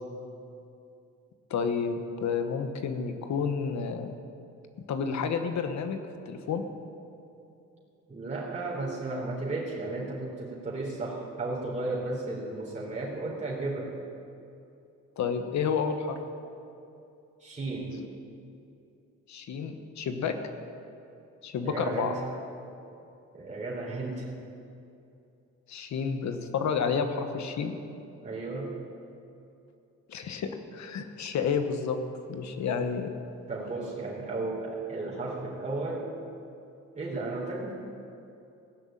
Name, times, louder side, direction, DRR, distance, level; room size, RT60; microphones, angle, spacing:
voice 1, 1.5-4.1 4.9-6.0 6.3-6.6 15.2-16.2 17.9-18.0 19.3-20.3 21.4-22.1 25.7-27.8 30.1-32.0 32.3-33.1, left 6 dB, 65° left, 7 dB, 1.3 m, -30 dB
voice 2, 8.1-13.9 17.4-18.1 21.6-22.2 23.3-24.4 28.2-28.7 33.5-36.1 36.9-37.7, right 2 dB, 25° right, -6 dB, 3.7 m, -34 dB
17.0 x 6.3 x 8.9 m, 2.7 s
cardioid pair, 90°, 30 cm